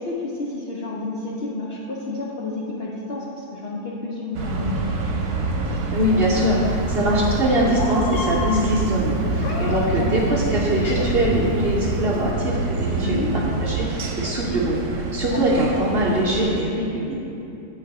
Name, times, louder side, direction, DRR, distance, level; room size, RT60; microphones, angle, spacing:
voice 1, 0.0-4.8 9.6-10.3 13.0-13.3 15.3-15.9, left 2 dB, 55° left, -5 dB, 0.7 m, -30 dB
sound 1, 4.3-16.6, right 2 dB, 80° right, 1.2 m, -27 dB
voice 2, 5.9-17.2, right 1 dB, 50° right, -5 dB, 0.8 m, -22 dB
Meow, 6.0-12.3, equal, 90° left, 1.2 m, -31 dB
8.5 x 3.3 x 4.7 m, 2.8 s
omnidirectional pair, 1.6 m